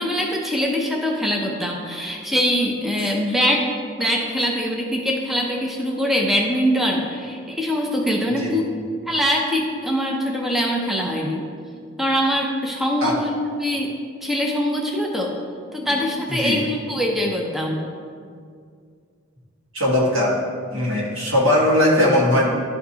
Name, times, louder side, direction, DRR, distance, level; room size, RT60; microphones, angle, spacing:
voice 1, 0.0-3.7 4.0-8.6 9.1-11.4 12.0-13.9 14.2-15.3 15.7-17.8, equal, ahead, -1 dB, 0.5 m, -23 dB
voice 2, 19.7-20.4 20.7-22.5, left 1 dB, 80° right, -4 dB, 1.8 m, -19 dB
11.5 x 4.3 x 2.8 m, 2.1 s
head